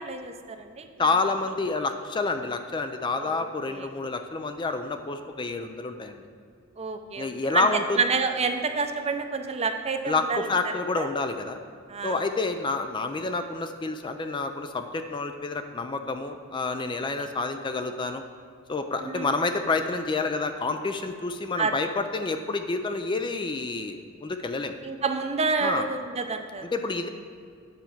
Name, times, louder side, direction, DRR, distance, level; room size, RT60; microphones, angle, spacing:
voice 1, 0.0-1.1 3.2-3.9 6.8-7.7 7.9-10.5 11.0-11.1 11.9-12.2 17.2-17.3 19.0-19.3 21.6-21.7 24.8-26.7, right 4 dB, 30° right, 6 dB, 0.6 m, -29 dB
voice 2, 1.0-6.2 7.2-8.0 10.1-11.6 12.0-18.2 18.7-24.8 25.6-25.9 26.7-27.1, left 3 dB, 25° left, 7 dB, 0.4 m, -28 dB
9.4 x 4.4 x 7.2 m, 2.3 s
head